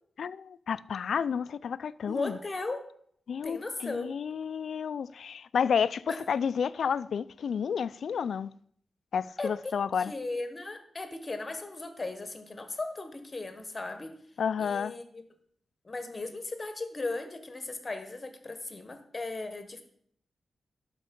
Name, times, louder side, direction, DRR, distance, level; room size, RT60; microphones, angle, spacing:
voice 1, 0.2-2.4 3.3-8.5 9.1-10.1 14.4-14.9, left 7 dB, 75° left, 0.3 m, -31 dB
voice 2, 2.1-2.9 3.4-4.2 6.1-6.2 9.4-9.7 10.0-14.1 14.6-15.2 15.8-19.8, left 3 dB, 30° left, 1.3 m, -37 dB
12.0 x 5.3 x 5.4 m
wide cardioid pair, 105°, 0 cm